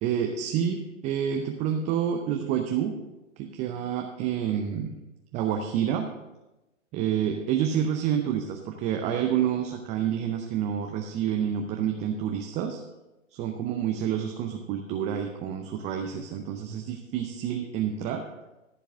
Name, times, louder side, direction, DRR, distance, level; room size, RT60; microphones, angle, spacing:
voice 1, 0.0-3.0 3.4-5.0 5.3-6.1 6.9-12.8 13.3-18.2, right 9 dB, 20° right, 4 dB, 0.6 m, -28 dB
14.0 x 4.7 x 6.2 m, 1.0 s
hypercardioid pair, 120°, 38 cm